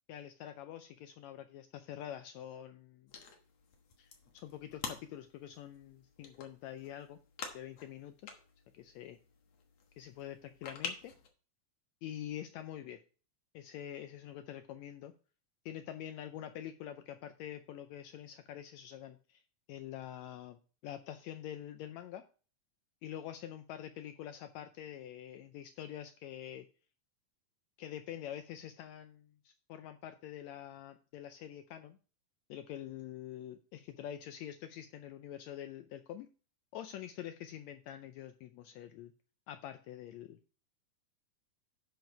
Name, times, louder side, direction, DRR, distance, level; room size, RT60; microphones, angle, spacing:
voice 1, 0.1-3.1 4.0-7.2 7.5-8.3 8.7-9.2 10.0-11.1 12.0-13.0 13.5-15.1 15.6-19.4 19.7-22.2 23.0-26.7 27.8-32.0 32.5-36.3 36.7-39.1 39.5-40.4, left 11 dB, 80° left, 9 dB, 1.7 m, -46 dB
sound 1, 3.1-11.3, left 6 dB, 60° left, 2.3 m, -48 dB
10.5 x 5.0 x 4.7 m, 0.37 s
omnidirectional pair, 3.5 m